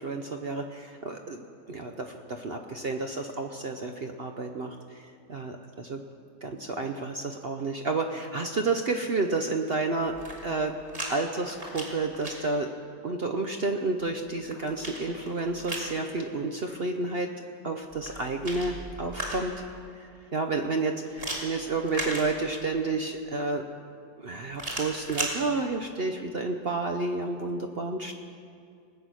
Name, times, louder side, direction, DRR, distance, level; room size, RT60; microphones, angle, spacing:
voice 1, 0.0-6.0 6.4-10.1 10.4-10.7 11.1-12.7 13.0-17.3 17.6-19.5 20.0-23.6 24.2-28.1, right 3 dB, 65° right, 4 dB, 0.6 m, -30 dB
sound 1, 10.0-11.1 11.4-12.3 14.1-15.9 17.9-19.7 21.2-22.8 24.5-25.3, right 1 dB, 30° right, 3.0 m, -36 dB
20.5 x 8.6 x 6.3 m, 2.4 s
omnidirectional pair, 2.0 m